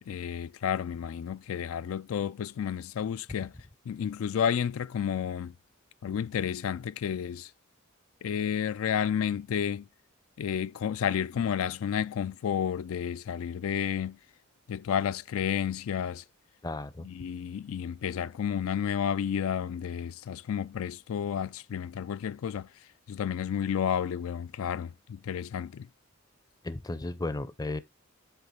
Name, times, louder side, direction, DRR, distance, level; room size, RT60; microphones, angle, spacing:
voice 1, 0.1-3.5 3.9-5.5 6.0-7.5 8.2-9.9 10.4-14.2 14.7-16.2 17.0-22.7 23.1-25.9, left 8 dB, 85° left, 0.4 m, -31 dB
voice 2, 16.6-17.1 26.6-27.8, left 2 dB, 20° left, 0.5 m, -34 dB
8.2 x 3.2 x 5.0 m
head